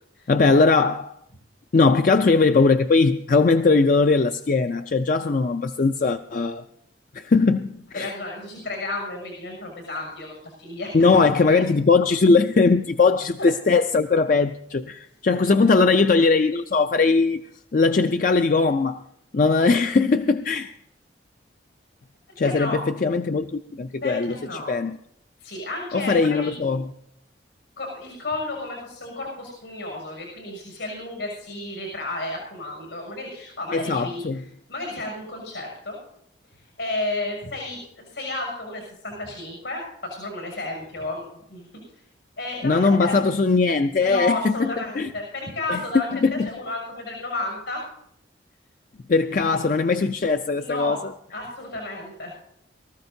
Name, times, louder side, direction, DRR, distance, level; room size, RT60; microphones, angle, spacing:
voice 1, 0.3-1.2 1.7-6.6 7.1-8.1 10.9-17.4 17.7-19.0 19.3-20.7 22.4-24.3 24.7-25.0 25.9-26.8 33.7-34.4 42.6-44.7 45.0-45.1 45.7-45.8 46.2-46.5 49.1-51.0, left 4 dB, 45° left, 0.4 m, -20 dB
voice 2, 7.9-11.6 13.4-13.5 15.6-16.0 22.4-22.8 24.0-24.7 25.4-26.5 27.8-36.0 36.5-41.7 42.0-42.1 42.4-43.1 44.0-47.8 49.4-49.6 50.5-51.0 51.3-52.3, left 2 dB, 90° left, 6.4 m, -32 dB
23.5 x 14.0 x 2.7 m
head